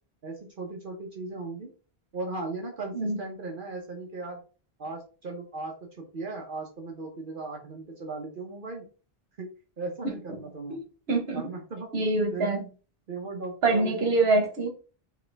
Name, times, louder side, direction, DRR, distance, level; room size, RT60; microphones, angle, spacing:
voice 1, 0.2-1.7 2.1-4.4 4.8-8.9 9.4-9.5 9.8-10.8 11.3-11.9 12.3-12.5 13.1-14.2, right 3 dB, 60° right, 1.0 m, -37 dB
voice 2, 11.1-11.5 11.9-12.6 13.6-14.7, right 3 dB, 80° right, 1.4 m, -25 dB
4.9 x 3.0 x 3.3 m
omnidirectional pair, 1.0 m